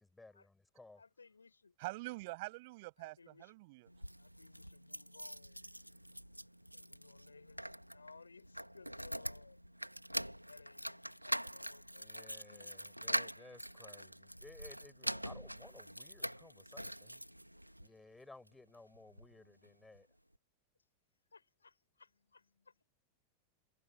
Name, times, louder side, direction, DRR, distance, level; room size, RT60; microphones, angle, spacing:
voice 1, 0.2-1.0 12.0-17.2 17.8-20.1, left 2 dB, 10° left, 5.6 m, -58 dB
voice 2, 1.0-1.8 3.0-3.6 4.2-5.6 6.7-9.6 10.5-12.8 19.3-19.7 21.3-22.9, left 4 dB, 75° left, 5.4 m, -61 dB
voice 3, 1.8-3.9, right 23 dB, 50° right, 6.5 m, -45 dB
sound 1, 3.9-17.9 18.5-19.3 19.6-19.7 19.9-20.0, equal, 90° right, 2.1 m, -44 dB
figure-of-eight pair, 90°, 0 cm